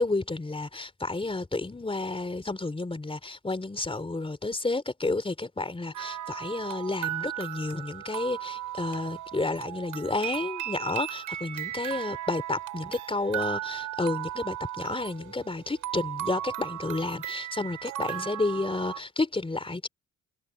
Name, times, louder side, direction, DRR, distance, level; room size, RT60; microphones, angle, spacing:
voice 1, 0.0-19.9, left 2 dB, 20° left, 3.7 m, -31 dB
sound 1, 5.9-19.0, right 13 dB, 80° right, 5.8 m, -36 dB
cardioid pair, 90°, 30 cm